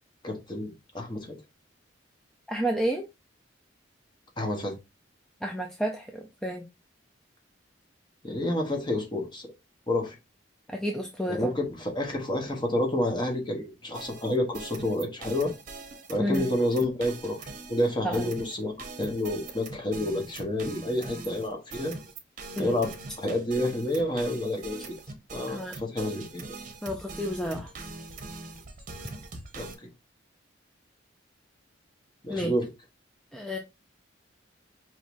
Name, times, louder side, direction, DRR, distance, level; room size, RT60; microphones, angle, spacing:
voice 1, 0.2-1.3 4.4-4.7 8.2-9.5 9.9-10.2 11.3-15.5 16.1-18.7 19.0-21.9 22.6-22.9 23.2-24.9 25.3-26.4 29.6-29.7 32.2-32.7, left 1 dB, 25° left, 1.0 m, -29 dB
voice 2, 2.5-3.0 5.4-6.6 10.7-11.5 16.2-16.5 18.0-18.3 22.6-22.8 25.5-25.8 26.8-27.7 32.3-32.5 33.3-33.6, equal, 5° left, 0.4 m, -31 dB
sound 1, 13.9-29.7, right 3 dB, 40° right, 0.9 m, -42 dB
5.2 x 3.1 x 2.5 m
head